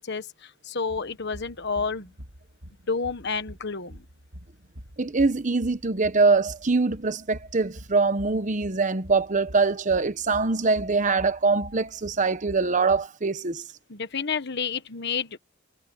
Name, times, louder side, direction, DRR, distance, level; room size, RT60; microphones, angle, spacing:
voice 1, 0.0-2.1 2.9-4.0 13.9-15.4, left 5 dB, 55° left, 1.3 m, -30 dB
sound 1, 0.9-13.1, equal, 80° right, 2.8 m, -46 dB
voice 2, 5.0-13.6, right 4 dB, 40° right, 1.0 m, -23 dB
head